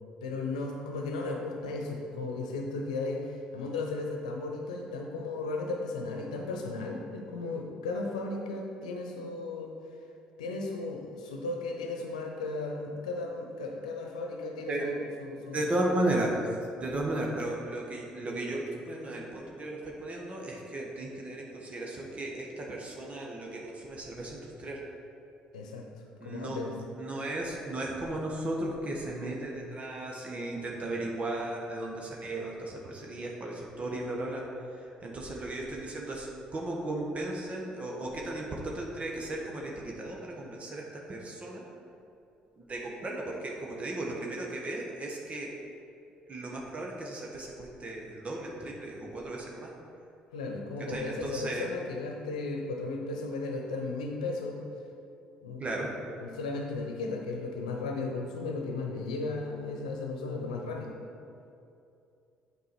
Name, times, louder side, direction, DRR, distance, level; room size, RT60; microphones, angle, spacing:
voice 1, 0.2-9.8 10.4-14.9 15.2-15.7 25.5-25.9 26.2-26.7 50.3-54.6 55.4-55.6 56.2-60.9, left 3 dB, 85° left, 2 dB, 0.8 m, -35 dB
voice 2, 15.5-16.4 16.7-24.8 26.2-26.6 26.9-34.4 34.8-41.6 42.6-45.5 46.3-49.7 50.9-51.7 55.6-55.9, right 1 dB, 35° right, -2 dB, 1.4 m, -35 dB
8.2 x 4.7 x 4.6 m, 2.6 s
hypercardioid pair, 55°, 4 cm